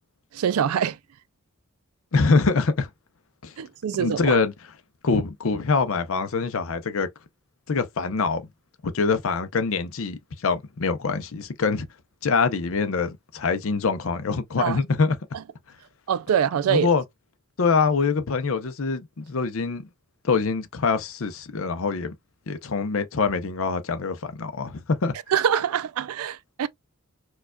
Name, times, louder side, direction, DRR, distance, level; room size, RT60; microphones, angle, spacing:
voice 1, 0.3-1.0 3.6-4.4 14.6-14.8 16.1-16.9 25.3-26.7, right 8 dB, 80° right, 0.4 m, -24 dB
voice 2, 2.1-2.9 3.4-3.5 4.0-4.5 5.0-7.1 7.7-8.4 8.8-11.9 12.2-15.2 16.7-17.0 17.6-19.9 20.2-22.1 22.5-25.1, left 4 dB, 65° left, 0.6 m, -24 dB
4.5 x 2.3 x 2.2 m
head